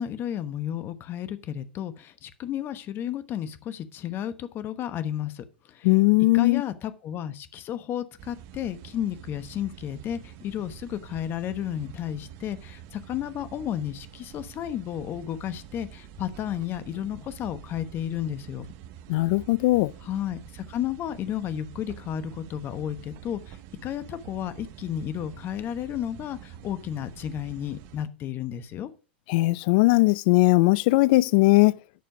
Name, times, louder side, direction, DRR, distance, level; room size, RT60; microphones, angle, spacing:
voice 1, 0.0-5.9 6.3-18.7 20.0-28.9, left 10 dB, 35° left, 1.1 m, -33 dB
voice 2, 5.8-6.6 19.1-19.9 29.3-31.7, left 22 dB, 55° left, 0.4 m, -19 dB
sound 1, 8.2-28.1, right 10 dB, 50° right, 0.9 m, -46 dB
9.4 x 6.7 x 4.9 m
hypercardioid pair, 100°, 6 cm